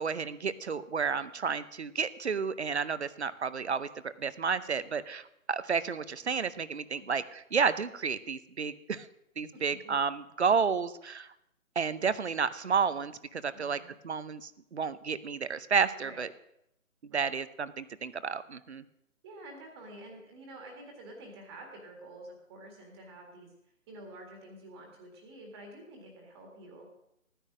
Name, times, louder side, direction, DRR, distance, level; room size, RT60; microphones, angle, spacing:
voice 1, 0.0-9.1 9.4-11.3 11.8-16.3 17.0-18.8, right 6 dB, 50° right, 15 dB, 0.7 m, -31 dB
voice 2, 9.5-9.9 13.5-13.9 16.0-16.2 17.1-17.3 19.2-23.5 23.9-26.8, right 1 dB, 20° right, 2 dB, 1.8 m, -49 dB
14.5 x 10.0 x 6.2 m, 0.80 s
figure-of-eight pair, 150°, 43 cm